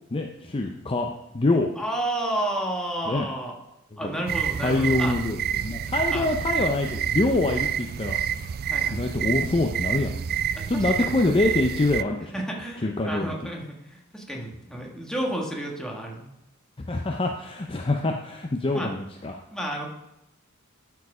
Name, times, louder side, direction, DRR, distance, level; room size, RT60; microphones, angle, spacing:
voice 1, 0.1-1.7 3.1-3.3 4.0-4.1 4.6-8.2 8.9-10.1 10.7-12.3 12.8-13.3 16.8-19.4, left 2 dB, 25° left, 2 dB, 0.6 m, -25 dB
voice 2, 1.8-3.6 4.0-5.2 6.1-6.3 8.6-9.1 10.5-11.1 12.3-16.3 18.7-18.9 19.5-19.9, right 1 dB, 5° left, -1 dB, 1.5 m, -31 dB
sound 1, 4.3-12.0, right 9 dB, 45° right, 0.3 m, -28 dB
12.5 x 4.7 x 4.9 m, 0.86 s
head